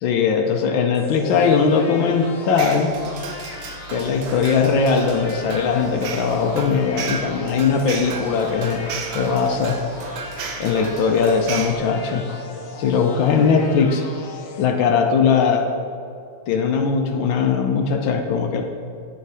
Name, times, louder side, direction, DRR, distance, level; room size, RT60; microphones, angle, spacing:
voice 1, 0.0-2.9 3.9-9.8 10.6-12.2 12.8-14.0 14.6-15.7 16.5-18.6, left 5 dB, 75° left, 3 dB, 1.4 m, -20 dB
sound 1, 0.9-14.7, left 4 dB, 55° left, 1.0 m, -38 dB
sound 2, 2.6-11.7, right 5 dB, 70° right, 1.5 m, -34 dB
10.0 x 6.9 x 4.8 m, 2.4 s
omnidirectional pair, 2.2 m